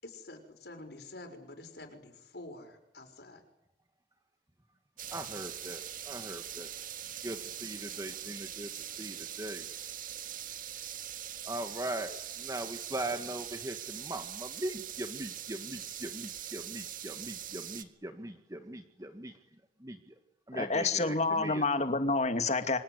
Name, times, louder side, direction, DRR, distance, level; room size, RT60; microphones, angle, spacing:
voice 1, 0.0-3.4, left 2 dB, 65° left, 5 dB, 6.2 m, -48 dB
sound 1, 5.0-17.8, right 10 dB, 50° right, 1.8 m, -42 dB
voice 2, 5.1-6.7 7.2-8.7 9.0-9.7 11.4-19.3 19.8-20.1 20.5-21.9, right 1 dB, 20° right, 6 dB, 1.7 m, -40 dB
voice 3, 20.5-22.8, left 3 dB, 40° left, 8 dB, 2.4 m, -28 dB
29.0 x 25.0 x 8.2 m, 0.84 s
head